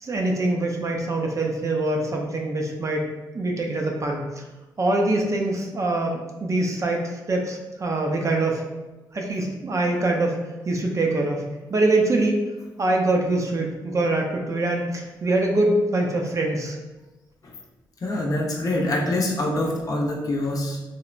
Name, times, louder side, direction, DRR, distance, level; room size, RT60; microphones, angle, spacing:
voice 1, 0.0-3.1 3.3-4.4 4.8-8.6 9.1-10.4 10.7-11.4 11.7-12.4 12.8-16.8, right 2 dB, 40° right, 1 dB, 0.5 m, -24 dB
voice 2, 18.0-20.8, left 1 dB, 45° left, -2 dB, 0.6 m, -25 dB
3.0 x 2.1 x 2.4 m, 1.1 s
cardioid pair, 65°, 8 cm